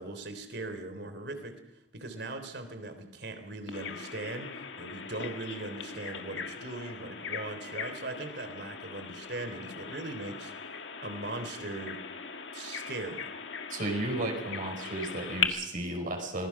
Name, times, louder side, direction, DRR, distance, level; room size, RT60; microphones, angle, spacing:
voice 1, 0.0-1.6 1.9-10.5 11.0-12.0 12.5-13.3, right 2 dB, 60° right, 8 dB, 3.5 m, -39 dB
Bird vocalization bird call bird song, 3.7-15.5, left 6 dB, 75° left, 1.7 m, -39 dB
voice 2, 13.7-16.5, right 1 dB, 45° right, 2 dB, 4.9 m, -33 dB
25.5 x 20.0 x 6.0 m, 0.87 s
head